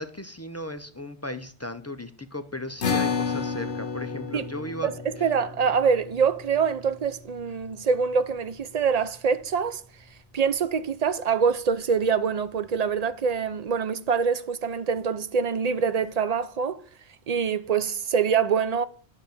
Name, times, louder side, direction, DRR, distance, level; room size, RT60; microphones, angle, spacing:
voice 1, 0.0-4.9, left 1 dB, 20° left, 0.4 m, -36 dB
sound 1, 2.8-9.4, left 5 dB, 70° left, 1.4 m, -33 dB
voice 2, 4.8-9.8 10.3-16.8 17.3-18.9, right 6 dB, 50° right, 0.5 m, -25 dB
11.0 x 3.9 x 7.0 m
omnidirectional pair, 1.2 m